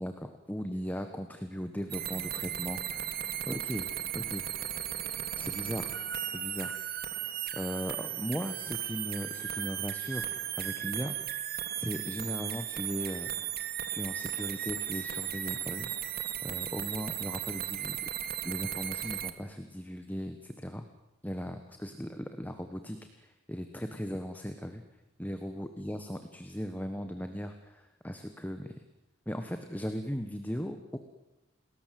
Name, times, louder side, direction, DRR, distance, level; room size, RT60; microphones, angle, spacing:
voice 1, 0.0-4.5 5.4-6.0 6.3-6.7 7.5-10.3 10.6-13.3 13.9-18.0 18.4-20.8 21.2-24.8 25.2-28.7 29.3-31.0, equal, 10° left, 7 dB, 1.3 m, -38 dB
sound 1, 1.9-19.3, right 10 dB, 50° right, 1.6 m, -36 dB
28.5 x 20.5 x 7.7 m, 0.97 s
head